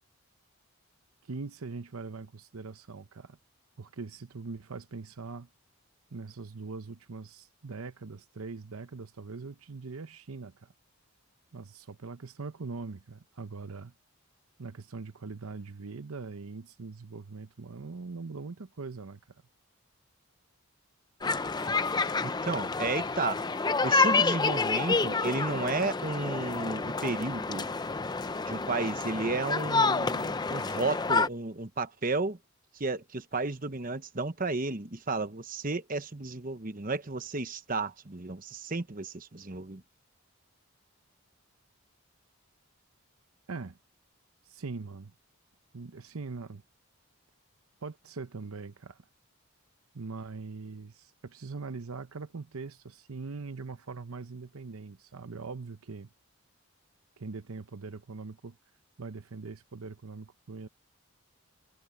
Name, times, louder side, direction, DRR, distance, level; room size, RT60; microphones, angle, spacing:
voice 1, 1.2-3.4 3.8-5.5 6.1-10.7 11.5-13.9 14.6-19.4 43.5-43.8 44.4-45.1 45.7-46.6 47.8-49.0 49.9-56.1 57.2-58.6 59.0-60.7, right 4 dB, 75° right, 0.8 m, -42 dB
sound 1, 21.2-31.3, left 4 dB, 20° left, 0.5 m, -28 dB
voice 2, 22.2-23.4 23.8-27.7 28.5-32.4 32.7-39.8, right 3 dB, 40° right, 1.0 m, -33 dB
head